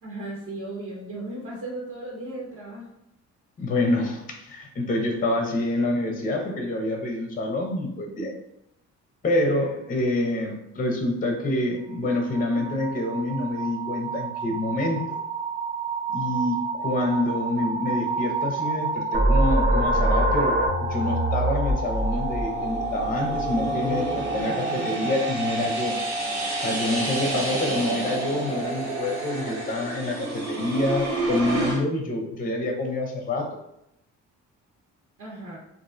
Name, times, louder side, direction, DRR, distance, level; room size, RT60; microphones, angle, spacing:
voice 1, 0.0-2.9 35.2-35.6, right 2 dB, 50° right, -4 dB, 0.8 m, -36 dB
voice 2, 3.6-8.3 9.2-15.2 16.1-26.0 26.6-33.6, left 1 dB, 30° left, 2 dB, 0.5 m, -27 dB
sound 1, 11.9-29.8, right 3 dB, 15° right, 0.9 m, -31 dB
sound 2, 19.1-24.4, right 1 dB, 30° right, 0.4 m, -24 dB
sound 3, 21.7-31.8, right 2 dB, 75° right, 1.1 m, -31 dB
2.4 x 2.1 x 2.5 m, 0.79 s
cardioid pair, 90°, 30 cm